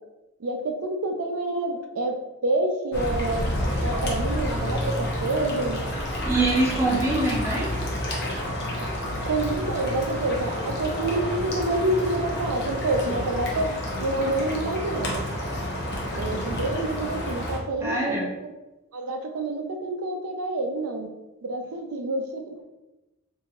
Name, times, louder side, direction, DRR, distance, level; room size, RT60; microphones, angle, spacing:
voice 1, 0.4-3.5 3.8-5.8 9.2-13.8 14.0-15.3 16.2-18.0 18.9-21.1 21.4-22.6, right 2 dB, 85° right, 4 dB, 0.4 m, -27 dB
sound 1, 2.9-17.6, left 1 dB, 50° left, 0.7 m, -29 dB
voice 2, 6.2-7.7 17.8-18.3, right 2 dB, 10° right, -5 dB, 0.6 m, -24 dB
2.9 x 2.6 x 2.4 m, 1.0 s
head